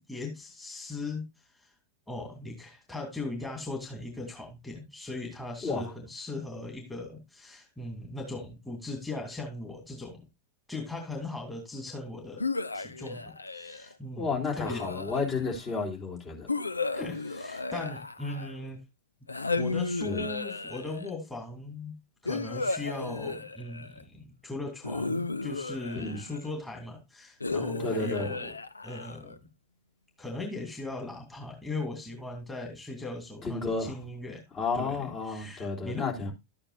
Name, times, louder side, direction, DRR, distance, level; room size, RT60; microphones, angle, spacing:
voice 1, 0.0-1.7 2.1-10.2 10.7-12.4 12.7-14.9 16.9-18.8 19.6-21.9 22.2-28.5 28.8-29.4 30.2-34.4 34.7-36.1, left 2 dB, 5° left, 2.9 m, -39 dB
voice 2, 5.6-5.9 14.2-16.5 20.0-20.2 25.9-26.2 27.8-28.3 33.4-34.0 34.5-36.3, left 4 dB, 30° left, 3.6 m, -32 dB
sound 1, 12.4-13.9 14.6-15.6 16.5-18.7 19.3-21.1 22.3-24.0 24.8-26.5 27.4-29.4, left 3 dB, 80° left, 0.5 m, -34 dB
12.5 x 8.9 x 2.6 m
figure-of-eight pair, 90°, 0 cm